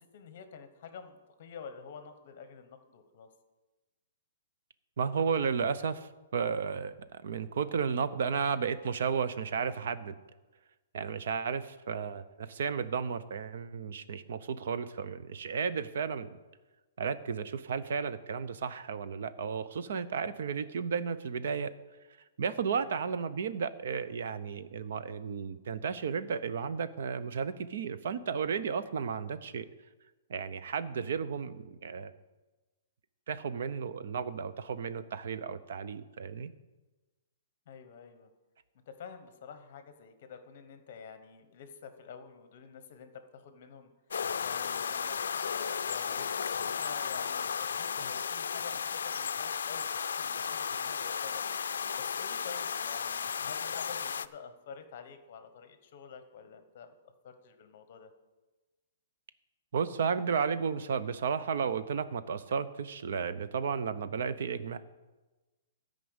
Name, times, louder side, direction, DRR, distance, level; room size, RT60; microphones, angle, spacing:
voice 1, 0.0-3.3 22.8-23.1 37.7-38.3 38.9-43.9 44.3-56.9 57.2-58.1, left 6 dB, 35° left, 9 dB, 1.0 m, -49 dB
voice 2, 5.0-10.1 10.9-16.3 17.0-21.7 22.4-29.7 30.3-32.1 33.3-36.5 59.7-64.8, right 6 dB, 50° right, 13 dB, 0.6 m, -33 dB
sound 1, 44.1-54.3, left 6 dB, 80° left, 0.4 m, -34 dB
12.5 x 5.2 x 7.9 m, 1.2 s
hypercardioid pair, 180°, 0 cm